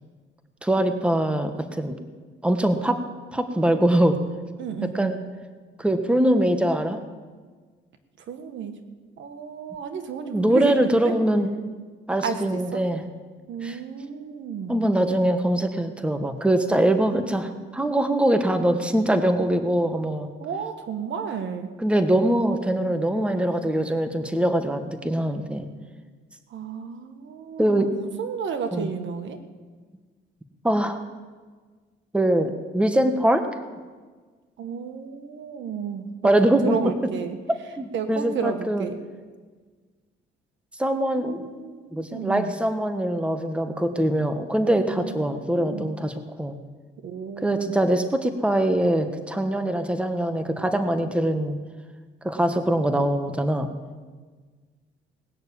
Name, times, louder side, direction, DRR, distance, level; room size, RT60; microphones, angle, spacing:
voice 1, 0.6-1.9 2.4-3.0 3.3-4.2 4.8-5.2 5.8-7.0 10.3-11.5 12.1-13.0 13.6-13.8 14.7-20.3 21.8-25.7 27.6-27.9 28.7-28.9 30.6-31.0 32.1-33.5 36.2-36.8 37.8-38.9 40.8-41.4 41.9-46.6 47.4-51.6 52.2-53.7, right 1 dB, 5° right, 7 dB, 1.2 m, -23 dB
voice 2, 4.6-5.2 8.3-8.8 9.2-11.1 12.2-12.8 13.5-14.9 20.4-21.7 26.5-29.4 34.6-36.1 36.6-37.4 37.9-39.0 41.0-42.6 44.9-45.9 47.0-48.1, right 6 dB, 70° right, 7 dB, 1.4 m, -32 dB
19.0 x 6.6 x 8.5 m, 1.4 s
cardioid pair, 90°, 20 cm